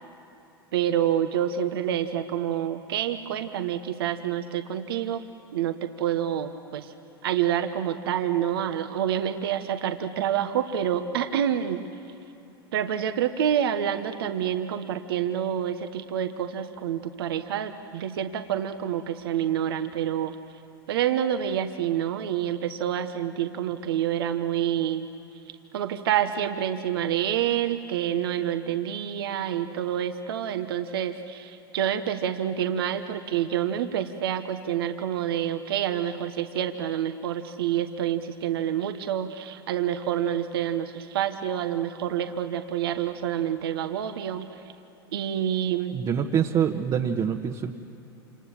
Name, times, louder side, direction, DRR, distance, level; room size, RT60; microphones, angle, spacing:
voice 1, 0.7-5.2 5.5-6.9 7.2-11.9 12.7-20.4 20.9-25.1 25.7-44.6 45.1-46.0, right 10 dB, 75° right, 7 dB, 1.2 m, -27 dB
voice 2, 45.9-47.7, right 8 dB, 35° right, 1 dB, 1.3 m, -25 dB
28.0 x 27.0 x 7.3 m, 2.9 s
hypercardioid pair, 90°, 12 cm